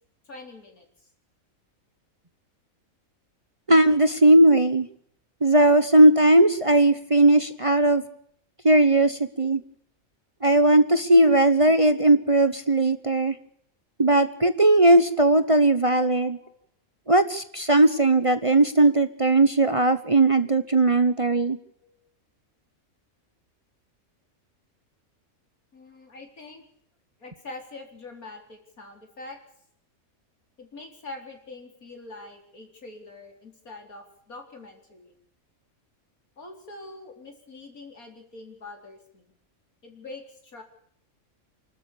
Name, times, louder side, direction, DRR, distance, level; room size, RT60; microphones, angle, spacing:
voice 1, 0.3-0.9 16.3-16.7 21.8-22.0 25.7-26.6 27.2-29.4 30.6-35.1 36.4-39.2 39.8-40.6, left 2 dB, 85° left, 3 dB, 4.6 m, -44 dB
voice 2, 3.7-4.9 5.4-8.0 8.6-9.6 10.4-13.3 14.0-16.4 17.1-21.6, right 1 dB, 25° right, 11 dB, 1.0 m, -18 dB
29.0 x 13.0 x 7.0 m, 0.67 s
omnidirectional pair, 1.5 m